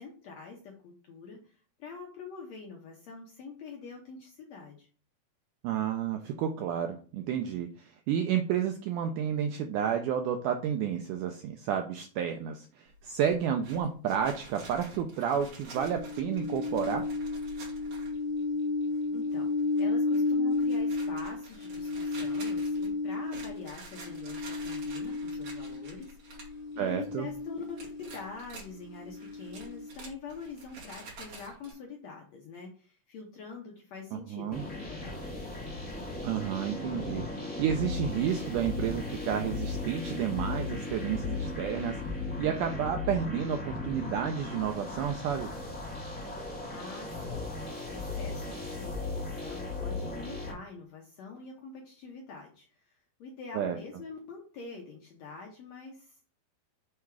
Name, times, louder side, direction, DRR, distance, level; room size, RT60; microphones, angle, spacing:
voice 1, 0.0-4.9 19.1-19.5 19.8-35.1 46.7-47.5 47.9-56.2, left 4 dB, 70° left, 0 dB, 1.7 m, -45 dB
voice 2, 5.6-17.0 26.8-27.3 34.1-34.6 36.2-45.5 53.5-53.8, right 8 dB, 85° right, 5 dB, 1.8 m, -31 dB
sound 1, 12.9-18.5 18.9-19.0 19.3-19.8 20.1-26.6 26.9-27.4 27.8-28.7 29.2-31.7, right 2 dB, 55° right, 3.3 m, -49 dB
sound 2, 15.8-26.0 26.3-28.3 28.8-29.9, left 3 dB, 35° left, 1.0 m, -33 dB
sound 3, 34.5-50.5, left 3 dB, 5° left, 1.3 m, -36 dB
6.6 x 3.5 x 4.6 m, 0.41 s
omnidirectional pair, 4.2 m